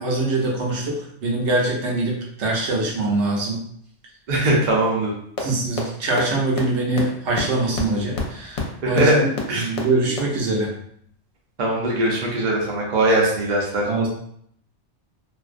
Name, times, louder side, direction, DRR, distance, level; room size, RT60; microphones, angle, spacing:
voice 1, 0.0-3.6 5.4-10.7 13.9-14.1, right 2 dB, 75° right, -2 dB, 0.9 m, -23 dB
voice 2, 4.3-5.1 8.8-9.2 9.5-9.7 11.6-13.8, right 1 dB, 50° right, -3 dB, 0.6 m, -20 dB
sound 1, 5.4-5.5 5.8-5.9 6.2-6.3 6.6-6.7 7.0-7.1 7.4-7.5 7.7-7.8 8.1-8.2 8.5-8.6 9.0-9.1 9.4-9.5 9.8-9.9 10.2-10.3, left 6 dB, 70° left, 0.9 m, -25 dB
2.5 x 2.1 x 2.4 m, 0.67 s
omnidirectional pair, 1.2 m